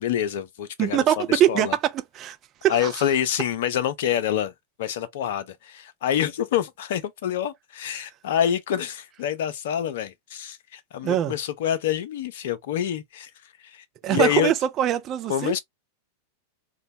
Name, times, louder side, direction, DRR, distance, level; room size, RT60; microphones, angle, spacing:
voice 1, 0.0-1.8 2.7-4.5 4.8-13.3 13.6-14.5 15.3-15.6, left 10 dB, 55° left, 0.4 m, -27 dB
voice 2, 0.8-2.4 2.6-2.9 11.0-11.3 14.0-15.5, right 11 dB, 30° right, 0.4 m, -23 dB
2.9 x 2.1 x 2.7 m
figure-of-eight pair, 90°, 0 cm